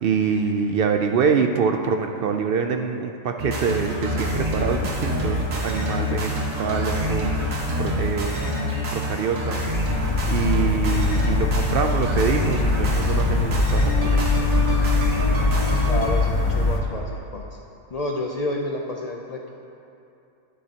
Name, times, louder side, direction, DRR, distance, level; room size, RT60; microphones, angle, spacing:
voice 1, 0.0-7.3 7.8-8.4 8.9-9.6 10.3-14.3, right 6 dB, 65° right, 5 dB, 0.5 m, -25 dB
sound 1, 3.4-16.1, equal, 85° right, 1.8 m, -26 dB
sound 2, 9.7-16.8, left 3 dB, 25° left, 0.5 m, -22 dB
voice 2, 15.9-17.5 17.9-19.5, left 2 dB, 80° left, 0 dB, 0.3 m, -29 dB
11.5 x 9.4 x 2.8 m, 2.7 s
omnidirectional pair, 1.4 m